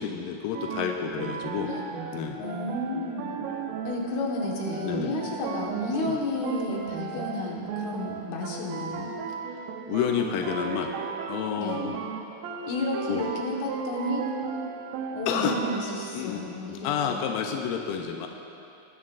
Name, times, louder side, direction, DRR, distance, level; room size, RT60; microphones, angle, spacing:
voice 1, 0.0-1.7 2.1-2.4 4.8-5.2 6.0-6.2 9.9-10.9 11.3-12.0 13.1-13.3 15.3-15.6 16.1-16.6 16.8-18.3, left 8 dB, 85° left, 3 dB, 1.9 m, -29 dB
sound 1, 0.5-16.1, right 6 dB, 75° right, 2.2 m, -35 dB
voice 2, 2.4-3.3 3.8-9.1 11.6-11.8 12.7-14.2 15.1-17.3, left 2 dB, 60° left, -2 dB, 2.4 m, -32 dB
19.5 x 12.5 x 2.5 m, 2.8 s
omnidirectional pair, 4.6 m